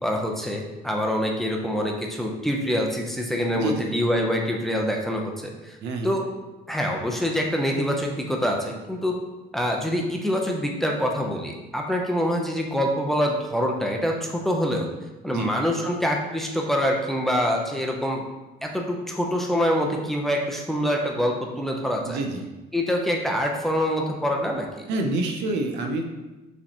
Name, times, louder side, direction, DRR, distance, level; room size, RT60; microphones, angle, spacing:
voice 1, 0.0-5.8 6.0-6.2 6.7-9.2 9.5-14.9 15.2-18.2 18.6-22.2 22.7-24.9, equal, ahead, 0 dB, 0.6 m, -25 dB
voice 2, 3.5-3.9 5.8-6.1 15.3-15.5 22.0-22.5 24.9-26.1, right 2 dB, 90° right, 4 dB, 0.6 m, -27 dB
4.9 x 3.4 x 2.9 m, 1.1 s
cardioid pair, 110°, 17 cm